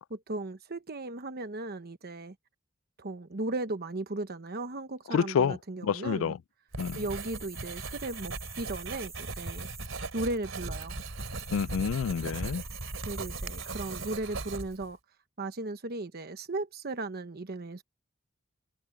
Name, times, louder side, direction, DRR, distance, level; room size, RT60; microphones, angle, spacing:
voice 1, 0.1-2.3 3.0-6.4 6.9-9.7 10.1-11.0 13.0-15.0 15.4-17.8, right 2 dB, 50° right, 1.0 m, -36 dB
voice 2, 5.1-5.6 5.8-6.3 6.8-7.0 11.5-12.6, left 7 dB, 80° left, 0.4 m, -28 dB
Writing, 6.7-14.9, right 3 dB, 75° right, 3.2 m, -38 dB
sound 1, 6.8-14.1, right 5 dB, 15° right, 5.7 m, -48 dB
head